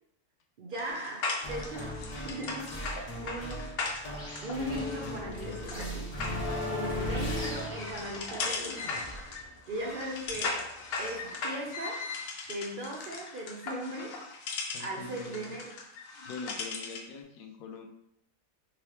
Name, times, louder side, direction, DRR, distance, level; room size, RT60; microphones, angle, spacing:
voice 1, 0.6-3.7 4.4-6.1 6.7-8.8 9.1-9.3 9.7-10.7 11.0-12.1 12.5-14.5 14.8-15.8, right 1 dB, 60° right, 0 dB, 0.5 m, -38 dB
sound 1, 0.7-17.1, left 4 dB, 60° left, 0.7 m, -38 dB
sound 2, 1.4-11.2, left 1 dB, 30° left, 0.9 m, -38 dB
voice 2, 14.7-15.5 16.3-17.9, left 4 dB, 85° left, 5 dB, 1.0 m, -43 dB
3.9 x 2.8 x 3.2 m, 0.75 s
omnidirectional pair, 1.4 m